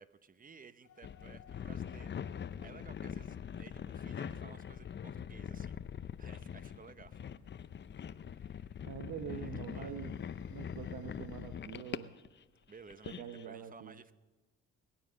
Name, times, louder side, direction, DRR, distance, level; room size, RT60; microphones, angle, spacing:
voice 1, 0.0-5.8 6.2-7.3 8.3-8.6 9.3-9.9 12.7-14.1, right 5 dB, 30° right, 13 dB, 0.8 m, -56 dB
sound 1, 0.8-12.2, left 9 dB, 75° left, 1.1 m, -66 dB
sound 2, 1.0-12.4 12.8-13.4, left 8 dB, 35° left, 0.6 m, -43 dB
voice 2, 8.9-10.2 10.5-12.1 13.0-13.9, right 8 dB, 80° right, 6 dB, 1.1 m, -44 dB
21.0 x 9.3 x 6.4 m, 1.2 s
cardioid pair, 90°, 30 cm